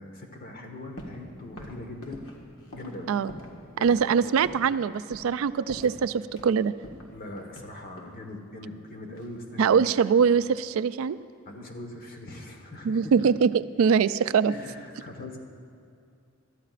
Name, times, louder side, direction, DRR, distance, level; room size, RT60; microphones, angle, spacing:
voice 1, 0.0-2.3 2.7-3.1 3.7-4.5 7.1-9.9 11.4-13.1 14.5-15.4, left 2 dB, 45° left, 3 dB, 1.4 m, -41 dB
sound 1, 1.0-1.3 1.6-3.6 3.8-4.1 4.5-4.8 5.1-5.4 5.7-6.5 6.8-8.2 9.1-10.1 10.3-10.8, equal, 80° left, 1.7 m, -45 dB
voice 2, 3.8-6.7 9.6-11.2 12.8-14.5, right 6 dB, 75° right, 15 dB, 0.3 m, -23 dB
22.0 x 13.0 x 2.5 m, 2.4 s
head